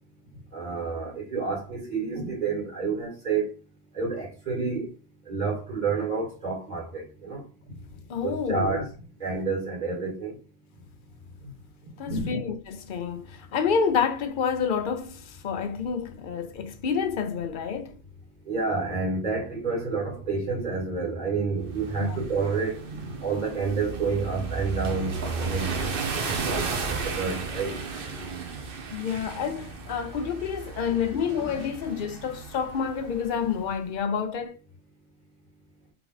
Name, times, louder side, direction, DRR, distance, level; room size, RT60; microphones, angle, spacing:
voice 1, 0.5-3.5 3.9-4.9 5.3-7.4 8.2-8.9 9.2-10.3 12.1-12.4 18.5-22.8 23.2-26.4 26.6-27.8 31.4-31.5, right 4 dB, 40° right, 2.1 m, -29 dB
voice 2, 8.1-8.9 12.0-18.0 22.0-22.2 28.9-34.6, left 6 dB, 55° left, 0.7 m, -29 dB
sound 1, 21.6-33.7, right 4 dB, 60° right, 0.9 m, -34 dB
3.5 x 2.9 x 3.9 m
omnidirectional pair, 1.1 m